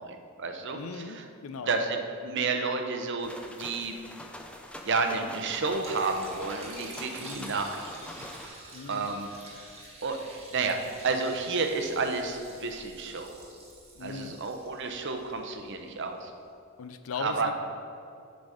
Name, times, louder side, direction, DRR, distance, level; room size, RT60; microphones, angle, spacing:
voice 1, 0.0-1.2 1.6-3.3 3.6-4.0 4.8-7.9 8.4-8.6 8.9-9.3 10.0-13.4 14.0-16.3 17.2-17.5, right 4 dB, 55° right, 5 dB, 0.7 m, -31 dB
voice 2, 0.7-1.2 1.4-1.7 7.2-7.6 8.7-9.1 14.0-14.3 16.8-17.5, left 5 dB, 65° left, 10 dB, 0.4 m, -38 dB
sound 1, 3.2-8.5, left 1 dB, 5° left, 0.4 m, -44 dB
Liquid, 5.7-15.9, right 2 dB, 25° right, 1.3 m, -48 dB
10.0 x 4.0 x 4.8 m, 2.5 s
head